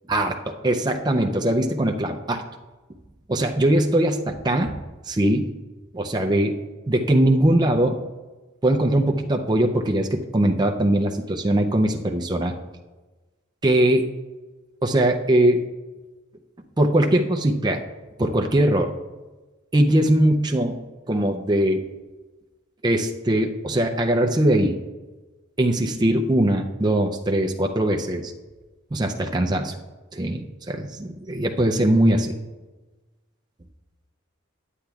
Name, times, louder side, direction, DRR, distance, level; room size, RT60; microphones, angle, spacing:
voice 1, 0.6-2.4 3.3-4.7 5.1-5.5 5.9-6.5 6.9-8.0 8.6-12.5 13.6-14.1 14.8-15.7 16.8-17.8 18.2-18.9 19.7-20.8 21.1-21.8 22.8-24.8 25.6-28.3 28.9-29.7 30.1-32.3, right 1 dB, 20° right, 3 dB, 0.4 m, -21 dB
9.8 x 8.8 x 2.3 m, 1.2 s
head